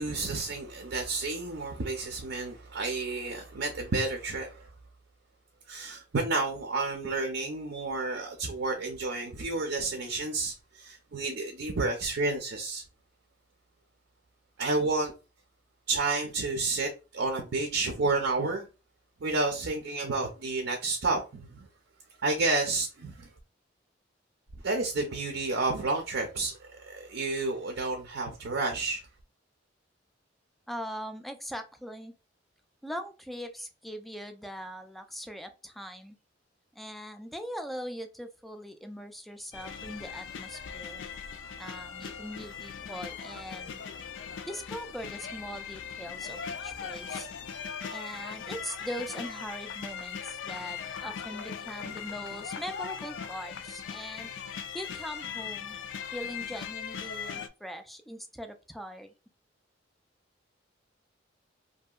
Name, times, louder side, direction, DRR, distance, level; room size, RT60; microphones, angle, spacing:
voice 1, 0.0-4.7 5.7-12.8 14.6-15.1 15.9-18.7 19.2-21.7 22.2-23.3 24.6-29.0, right 3 dB, 75° right, 0.6 m, -30 dB
voice 2, 30.7-32.1 32.8-36.2 36.8-41.0 41.6-43.8 44.5-47.3 47.9-54.3 54.7-55.7 56.1-59.1, equal, ahead, 0.3 m, -41 dB
sound 1, 39.5-57.5, left 7 dB, 85° left, 0.4 m, -39 dB
2.8 x 2.6 x 2.3 m
head